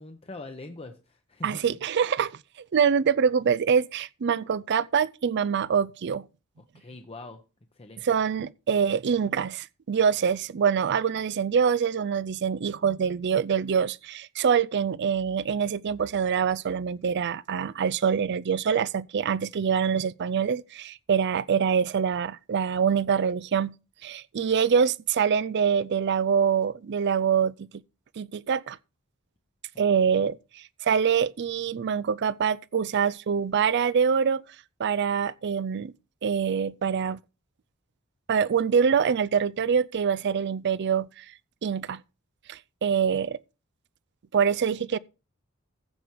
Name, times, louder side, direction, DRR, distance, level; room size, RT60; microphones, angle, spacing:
voice 1, 0.0-1.8 6.7-7.4 7.8-8.0 30.1-30.3, left 2 dB, 30° left, 0.8 m, -43 dB
voice 2, 1.4-2.3 2.7-6.3 8.0-23.7 24.0-27.7 28.2-28.8 29.8-34.4 34.8-35.9 36.2-37.2 38.3-41.2 41.6-42.0 42.5-43.4 44.3-45.0, right 7 dB, 55° right, 0.4 m, -25 dB
15.0 x 5.1 x 4.6 m
head